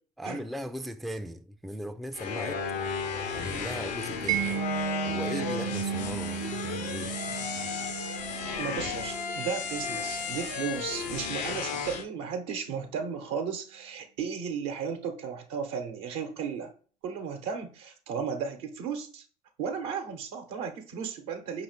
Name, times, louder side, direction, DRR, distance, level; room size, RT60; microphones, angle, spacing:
voice 1, 0.2-2.6 3.3-4.5 5.0-7.2, equal, ahead, 0.4 m, -38 dB
sound 1, 2.1-12.0, left 6 dB, 75° left, 0.8 m, -34 dB
Mallet percussion, 4.3-11.1, right 11 dB, 40° right, 0.7 m, -35 dB
voice 2, 8.6-16.7 17.0-19.2 19.6-21.6, right 6 dB, 70° right, 1.0 m, -35 dB
5.5 x 2.8 x 3.3 m
hypercardioid pair, 55°, 21 cm